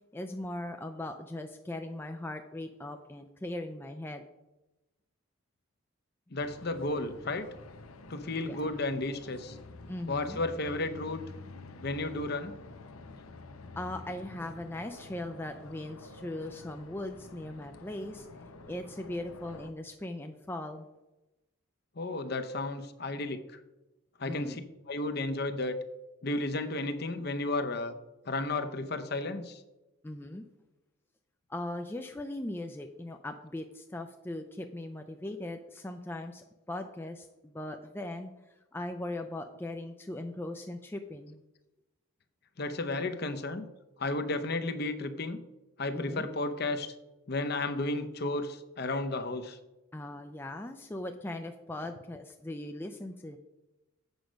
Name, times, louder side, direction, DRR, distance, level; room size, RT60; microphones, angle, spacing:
voice 1, 0.1-4.2 8.4-8.6 9.9-10.4 13.8-18.3 18.7-20.9 24.3-24.6 30.0-30.4 31.5-38.3 38.7-41.4 45.9-46.3 49.9-53.4, left 1 dB, 10° left, 5 dB, 0.3 m, -39 dB
voice 2, 6.3-7.5 8.1-9.6 10.1-11.2 11.8-12.6 22.0-23.4 24.2-24.6 24.9-25.8 26.2-27.9 28.3-29.6 42.6-43.6 44.0-45.4 45.8-46.9 47.3-49.6, left 2 dB, 50° left, 9 dB, 0.7 m, -33 dB
sound 1, 6.4-19.7, left 3 dB, 85° left, 0.8 m, -49 dB
8.0 x 6.3 x 5.1 m, 1.0 s
head